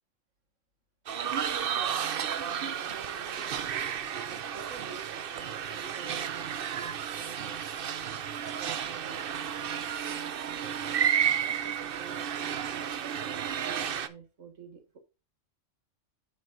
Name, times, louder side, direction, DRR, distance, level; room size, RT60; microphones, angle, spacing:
sound 1, 1.1-14.1, right 8 dB, 55° right, 0.8 m, -32 dB
voice 1, 1.7-3.8 4.3-15.0, right 6 dB, 80° right, 2.0 m, -49 dB
9.4 x 7.9 x 2.6 m
omnidirectional pair, 1.3 m